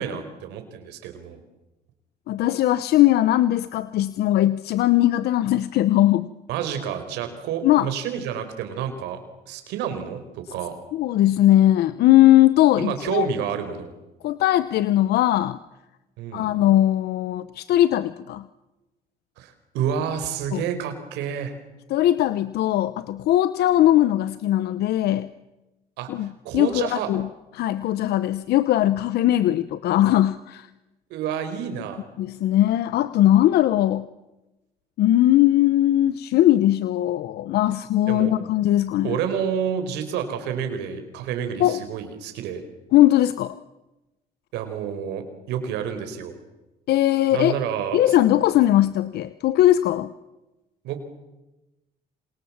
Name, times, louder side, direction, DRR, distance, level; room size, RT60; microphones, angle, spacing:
voice 1, 0.0-1.4 6.5-9.2 9.5-10.7 12.7-13.9 16.2-16.5 19.4-21.5 26.0-27.1 31.1-32.0 38.1-38.3 39.0-42.6 44.5-46.4 47.3-48.2 50.8-51.0, right 8 dB, 90° right, 7 dB, 4.4 m, -29 dB
voice 2, 2.3-6.3 7.6-7.9 10.9-13.3 14.2-15.6 16.3-18.4 20.5-20.6 21.9-25.3 26.1-26.3 26.5-27.2 27.5-30.7 32.2-34.1 35.0-39.2 41.6-41.8 42.9-43.5 46.9-47.5 47.9-50.1, left 13 dB, 75° left, 15 dB, 0.9 m, -19 dB
28.0 x 27.0 x 7.4 m, 1.0 s
cardioid pair, 110°, 17 cm